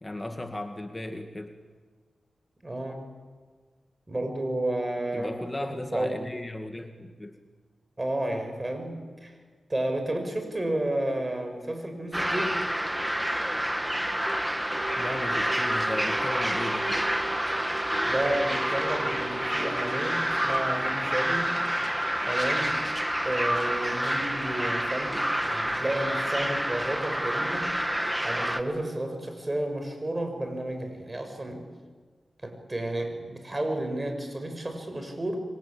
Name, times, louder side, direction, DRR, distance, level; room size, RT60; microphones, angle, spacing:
voice 1, 0.0-1.6 5.1-7.4 15.0-16.9, left 1 dB, 20° left, 5 dB, 2.1 m, -36 dB
voice 2, 2.6-3.1 4.1-6.2 8.0-9.4 9.7-12.6 18.0-21.5 22.3-22.8 23.2-27.7 28.2-31.7 32.4-35.4, right 1 dB, 25° right, 6 dB, 6.9 m, -31 dB
sound 1, 12.1-28.6, equal, 10° right, 2.0 m, -28 dB
sound 2, 14.7-21.4, right 4 dB, 80° right, 2.6 m, -41 dB
28.0 x 24.0 x 8.9 m, 1.5 s
cardioid pair, 55°, 0 cm